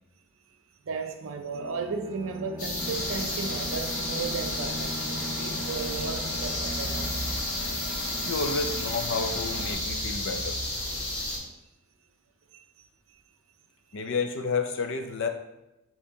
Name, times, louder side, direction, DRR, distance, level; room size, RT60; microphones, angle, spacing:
voice 1, 0.8-7.2 12.5-12.6, right 4 dB, 60° right, 0.4 m, -35 dB
Bowed string instrument, 1.5-7.5, left 1 dB, 25° right, 0.8 m, -40 dB
sound 1, 2.6-11.4, left 1 dB, 80° left, 1.3 m, -32 dB
Engine, 2.8-9.7, equal, 5° right, 1.2 m, -40 dB
voice 2, 8.2-10.6 13.9-15.3, left 4 dB, 55° left, 0.4 m, -30 dB
6.6 x 2.8 x 2.7 m
head